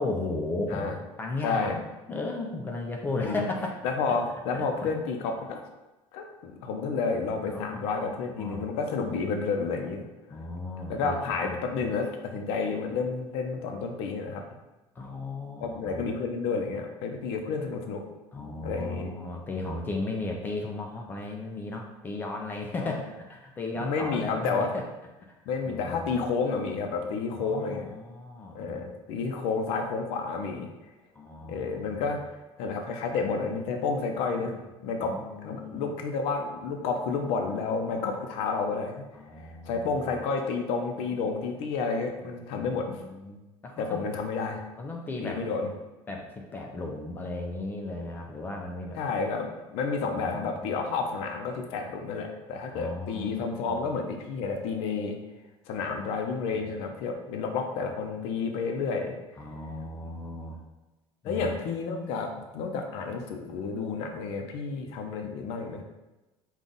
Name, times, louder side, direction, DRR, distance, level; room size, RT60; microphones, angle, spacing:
voice 1, 0.0-1.8 2.1-3.8 4.5-4.9 7.5-8.7 10.3-11.9 15.0-16.1 18.3-24.9 25.3-25.4 25.6-26.1 27.3-28.9 31.1-32.1 35.0-35.9 39.1-39.9 40.9-41.2 42.6-44.0 44.8-45.4 46.1-49.0 50.0-50.8 52.7-53.9 56.5-56.7 59.4-60.6 61.3-61.5, left 2 dB, 20° left, 1 dB, 0.4 m, -36 dB
voice 2, 1.4-1.8 3.2-3.5 3.8-5.7 6.1-10.0 10.9-14.4 15.6-18.0 18.6-19.1 22.8-23.0 23.8-24.7 25.5-27.9 28.5-30.7 31.5-32.2 32.6-34.5 34.8-39.1 39.7-43.0 43.8-44.6 45.2-45.7 49.0-55.2 55.7-59.1 61.2-65.8, left 4 dB, 65° left, 4 dB, 0.7 m, -30 dB
5.4 x 2.4 x 3.9 m, 1.1 s
cardioid pair, 165°, 10 cm